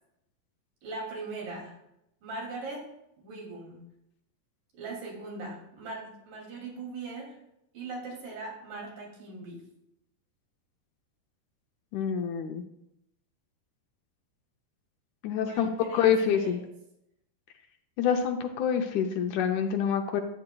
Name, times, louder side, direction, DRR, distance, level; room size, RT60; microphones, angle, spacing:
voice 1, 0.8-1.8 2.2-2.8 3.2-3.9 4.7-7.3 7.7-9.6 15.4-16.6, right 3 dB, 80° right, -2 dB, 4.4 m, -40 dB
voice 2, 11.9-12.6 15.2-16.6 18.0-20.2, left 8 dB, 75° left, 5 dB, 1.9 m, -26 dB
12.5 x 8.9 x 2.3 m, 0.82 s
omnidirectional pair, 3.9 m